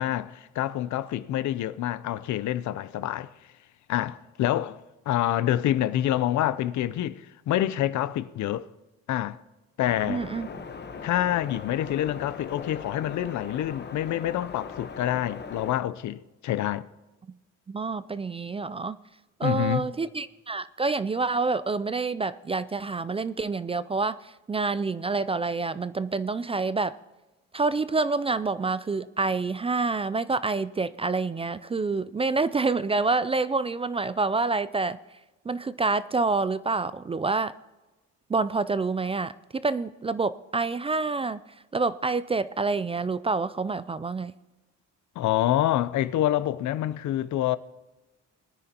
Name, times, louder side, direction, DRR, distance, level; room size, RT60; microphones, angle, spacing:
voice 1, 0.0-3.3 3.9-4.8 5.1-8.7 9.1-9.4 9.8-10.2 11.0-16.9 19.4-19.9 45.2-47.6, left 12 dB, 70° left, 0.6 m, -27 dB
sound 1, 9.8-15.8, left 5 dB, 35° left, 1.1 m, -40 dB
voice 2, 10.1-10.7 17.7-19.0 19.4-27.0 27.5-35.0 35.5-37.5 38.3-41.4 41.7-44.3, right 3 dB, 20° right, 0.3 m, -27 dB
21.0 x 9.7 x 2.9 m
cardioid pair, 90°, 30 cm